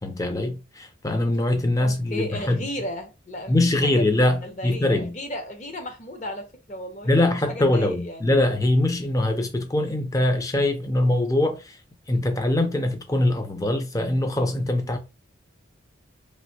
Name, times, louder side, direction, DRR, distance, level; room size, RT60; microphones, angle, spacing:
voice 1, 0.0-2.7 3.5-5.1 7.0-11.8 12.1-15.0, left 1 dB, 20° left, 0.5 m, -23 dB
voice 2, 1.8-4.0 4.4-8.2, left 1 dB, 40° left, 0.8 m, -35 dB
3.2 x 2.5 x 2.8 m
head